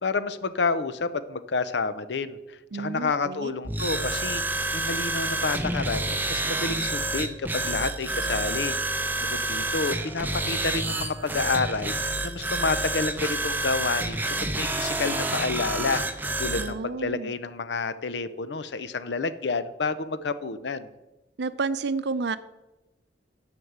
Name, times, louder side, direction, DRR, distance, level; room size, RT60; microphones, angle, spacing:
voice 1, 0.0-8.8 9.3-11.9 12.2-16.0 16.4-20.9, left 4 dB, 75° left, 13 dB, 0.6 m, -29 dB
voice 2, 2.7-3.5 16.5-17.3 21.4-22.4, right 4 dB, 70° right, 14 dB, 0.6 m, -30 dB
sound 1, 3.6-16.7, right 2 dB, 10° right, 0.8 m, -28 dB
11.0 x 5.3 x 7.9 m, 1.0 s
head